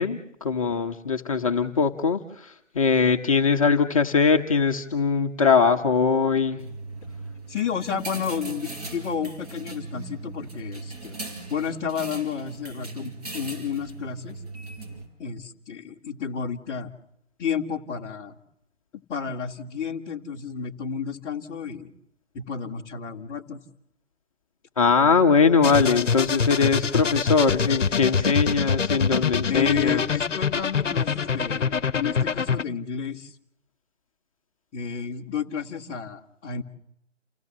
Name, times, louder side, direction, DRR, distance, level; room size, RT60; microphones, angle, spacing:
voice 1, 0.0-6.6 24.8-30.0, left 5 dB, 25° left, 3 dB, 1.0 m, -21 dB
sound 1, 6.6-15.1, right 3 dB, 30° right, 5.2 m, -39 dB
voice 2, 7.5-11.2 11.5-14.4 15.2-16.9 17.4-18.3 18.9-21.9 22.3-23.6 29.5-33.3 34.7-36.6, left 7 dB, 10° left, -4 dB, 1.3 m, -31 dB
sound 2, 25.6-32.6, left 6 dB, 70° left, 0.9 m, -25 dB
29.5 x 16.5 x 7.4 m, 0.78 s
figure-of-eight pair, 155°, 37 cm